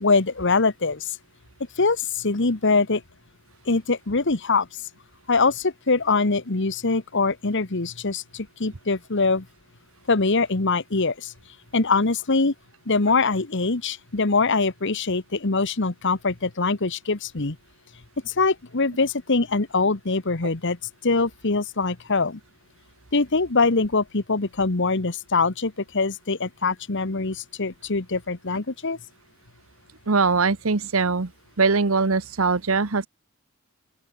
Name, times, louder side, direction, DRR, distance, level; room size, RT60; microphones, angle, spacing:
voice 1, 0.0-1.2 1.8-3.0 3.7-4.7 5.3-9.5 10.1-11.3 11.7-12.5 12.9-17.6 18.2-20.8 21.0-22.4 23.1-29.0, left 3 dB, 60° left, 1.4 m, -23 dB
voice 2, 30.1-31.3 31.6-33.1, right 4 dB, 70° right, 1.1 m, -21 dB
open air
head